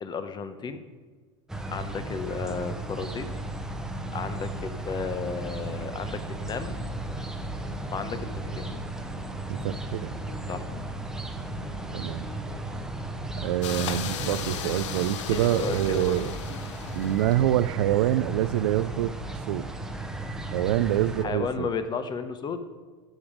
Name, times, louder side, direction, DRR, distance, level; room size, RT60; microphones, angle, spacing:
voice 1, 0.0-0.8 1.7-3.4 4.1-6.7 7.9-8.3 8.6-8.7 10.5-10.7 15.3-16.2 21.2-22.6, left 5 dB, 30° left, 10 dB, 0.9 m, -33 dB
sound 1, 1.5-21.3, right 2 dB, 5° right, 0.9 m, -35 dB
sound 2, 6.7-14.7, left 5 dB, 60° left, 1.9 m, -46 dB
voice 2, 9.5-10.2 11.9-12.3 13.4-16.3 16.9-19.2 19.5-19.7 20.5-21.7, right 13 dB, 75° right, 16 dB, 0.4 m, -26 dB
sound 3, 13.6-17.7, left 9 dB, 80° left, 0.7 m, -37 dB
10.5 x 7.1 x 5.0 m, 1.5 s
hypercardioid pair, 100°, 15 cm